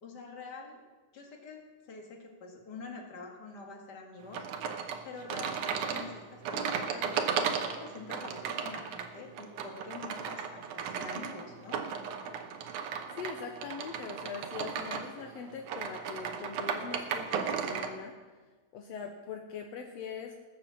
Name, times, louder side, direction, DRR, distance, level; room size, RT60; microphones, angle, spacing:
voice 1, 0.0-0.8 1.1-4.5 5.0-11.9, left 4 dB, 35° left, 1 dB, 2.0 m, -46 dB
sound 1, 4.3-17.9, right 7 dB, 70° right, 2.2 m, -35 dB
voice 2, 13.2-18.1 18.7-20.4, left 6 dB, 75° left, 3 dB, 1.5 m, -42 dB
19.0 x 6.7 x 7.2 m, 1.3 s
omnidirectional pair, 4.0 m